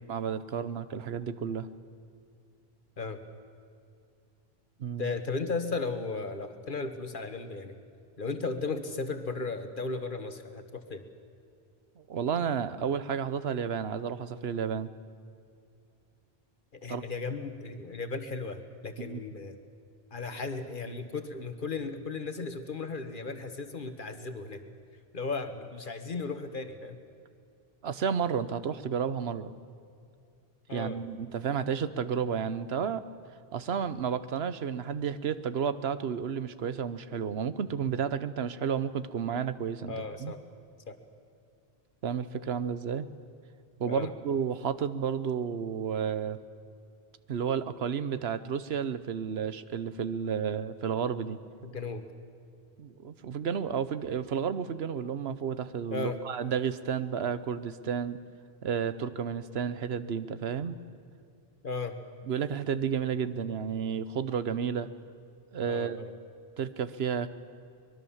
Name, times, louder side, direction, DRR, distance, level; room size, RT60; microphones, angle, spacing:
voice 1, 0.1-1.7 4.8-5.1 12.0-14.9 16.9-17.0 19.0-19.2 27.8-29.5 30.7-33.0 33.5-40.3 42.0-43.1 43.8-46.4 47.3-51.4 52.8-58.2 58.6-60.8 62.3-64.9 65.5-66.0 66.6-67.3, right 7 dB, 80° right, 13 dB, 1.1 m, -31 dB
voice 2, 5.0-7.8 8.2-11.0 16.8-19.6 20.1-24.6 25.1-27.0 30.7-31.0 39.9-40.4 40.9-41.0 43.8-44.1 51.6-52.0 55.9-56.2 61.6-61.9 65.6-66.1, left 4 dB, 55° left, 8 dB, 1.6 m, -35 dB
24.0 x 21.5 x 7.2 m, 2.4 s
omnidirectional pair, 1.0 m